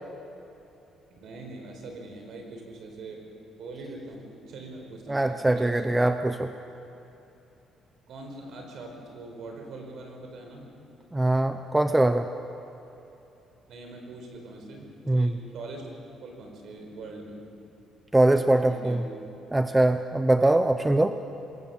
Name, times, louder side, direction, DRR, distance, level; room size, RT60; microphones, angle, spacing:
voice 1, 1.1-3.3 3.6-5.8 8.1-10.7 13.7-15.9 16.2-17.5 18.3-19.0, right 2 dB, 55° right, 2 dB, 4.7 m, -42 dB
voice 2, 5.1-6.5 11.1-12.3 15.1-15.3 18.1-19.0 19.5-21.1, right 1 dB, 10° right, 8 dB, 0.6 m, -22 dB
25.5 x 21.5 x 7.2 m, 2.9 s
cardioid pair, 175°, 0 cm